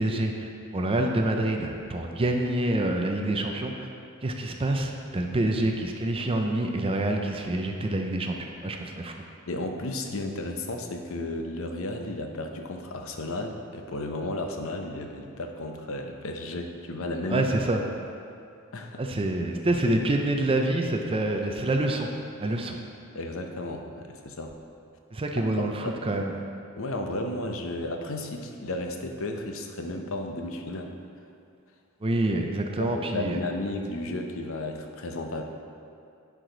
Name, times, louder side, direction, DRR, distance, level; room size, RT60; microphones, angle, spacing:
voice 1, 0.0-3.9 4.2-9.1 17.3-17.8 19.0-22.1 22.4-22.8 25.1-26.3 32.0-33.4, right 1 dB, 25° right, 2 dB, 0.5 m, -27 dB
voice 2, 9.5-17.4 18.7-19.0 23.1-24.5 25.4-26.0 26.8-30.9 32.8-35.4, left 2 dB, 65° left, 4 dB, 0.7 m, -33 dB
10.0 x 4.8 x 3.9 m, 2.4 s
head